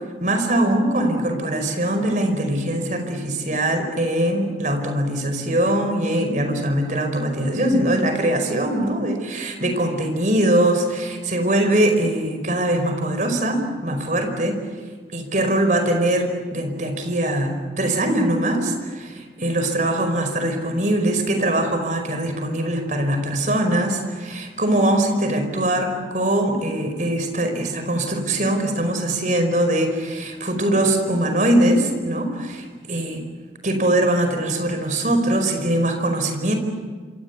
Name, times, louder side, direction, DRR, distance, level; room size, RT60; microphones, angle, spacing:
voice 1, 0.2-14.6 15.1-33.2 33.6-36.5, right 1 dB, 45° right, 6 dB, 5.1 m, -22 dB
27.0 x 26.0 x 8.4 m, 1.5 s
head